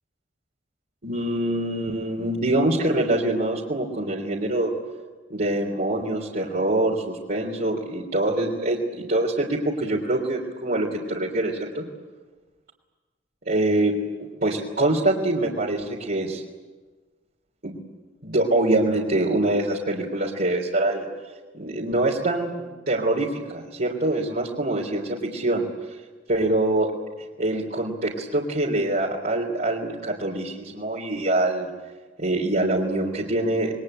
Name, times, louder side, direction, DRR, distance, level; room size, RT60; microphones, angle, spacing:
voice 1, 1.0-4.8 5.3-11.8 13.4-13.9 14.2-16.4 17.6-17.8 18.2-21.1 21.5-25.9 26.3-26.9 27.4-31.7 32.2-33.7, right 2 dB, 55° right, -3 dB, 3.3 m, -24 dB
27.5 x 22.0 x 8.9 m, 1.3 s
head